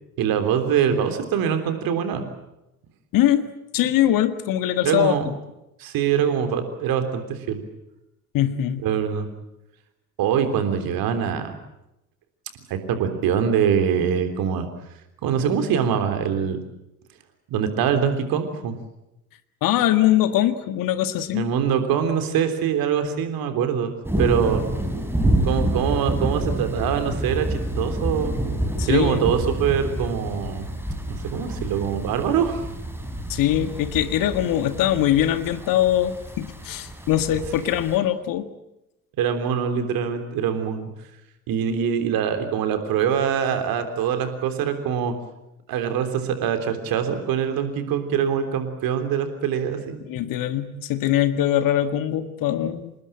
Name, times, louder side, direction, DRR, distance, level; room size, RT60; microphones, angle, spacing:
voice 1, 0.2-2.2 4.8-5.3 5.8-7.6 8.8-9.3 10.2-11.5 12.7-14.7 15.2-16.6 17.5-18.8 21.3-23.9 24.2-24.6 25.4-28.3 28.9-30.7 31.1-32.6 39.2-40.9 41.5-45.1 45.7-50.0, right 8 dB, 50° right, 8 dB, 3.5 m, -23 dB
voice 2, 3.1-5.1 8.3-8.8 19.6-21.5 28.8-29.3 33.3-38.5 50.1-52.9, left 12 dB, 45° left, 11 dB, 1.7 m, -22 dB
sound 1, 24.0-38.0, right 1 dB, 5° right, 5.1 m, -28 dB
27.0 x 20.0 x 8.9 m, 0.91 s
figure-of-eight pair, 60°, 45 cm